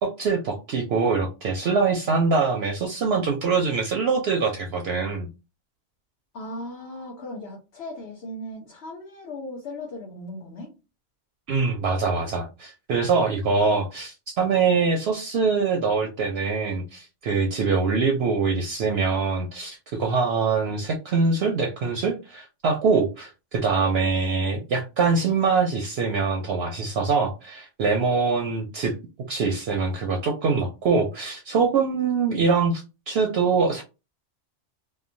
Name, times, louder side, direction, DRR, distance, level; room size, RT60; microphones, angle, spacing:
voice 1, 0.0-5.3 11.5-28.9 29.3-33.8, right 4 dB, 65° right, 2 dB, 0.7 m, -24 dB
voice 2, 6.3-10.7, left 1 dB, 60° left, -2 dB, 1.0 m, -37 dB
2.9 x 2.2 x 2.5 m, 0.28 s
omnidirectional pair, 1.2 m